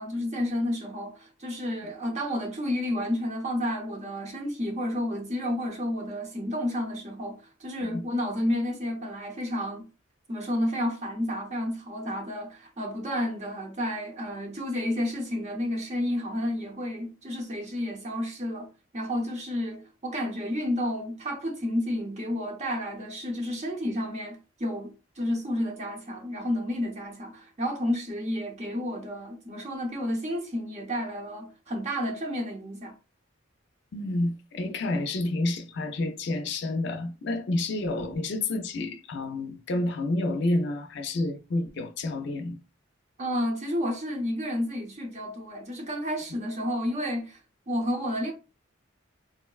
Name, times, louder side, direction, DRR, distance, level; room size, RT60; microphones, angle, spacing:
voice 1, 0.0-9.9 10.3-32.9 43.2-47.4 47.7-48.3, left 1 dB, 35° right, 0.7 m, -31 dB
voice 2, 33.9-42.6, left 2 dB, 60° left, 0.4 m, -29 dB
3.8 x 2.1 x 2.3 m
head